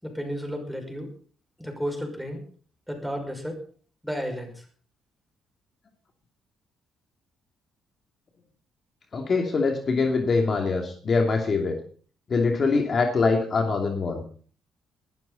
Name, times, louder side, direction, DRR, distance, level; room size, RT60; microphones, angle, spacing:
voice 1, 0.0-1.1 1.6-2.4 2.9-3.5 4.0-4.5, equal, ahead, 4 dB, 5.9 m, -32 dB
voice 2, 9.1-11.8 12.3-14.2, left 4 dB, 45° left, 3 dB, 2.7 m, -23 dB
19.5 x 13.0 x 4.1 m, 0.44 s
cardioid pair, 90°, 0 cm